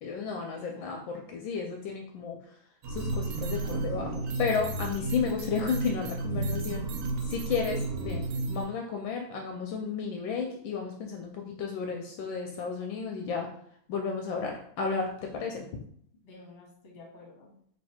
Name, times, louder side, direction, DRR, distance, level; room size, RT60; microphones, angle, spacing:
voice 1, 0.0-2.4 2.9-6.9 7.2-13.5 13.9-15.7, left 5 dB, 75° left, 2 dB, 1.2 m, -33 dB
voice 2, 0.5-0.9 3.5-4.3 15.4-15.7 16.2-17.5, left 2 dB, 35° left, -2 dB, 1.1 m, -52 dB
sound 1, 2.8-8.7, right 2 dB, 80° right, 0.9 m, -32 dB
3.2 x 3.1 x 4.2 m, 0.65 s
omnidirectional pair, 2.3 m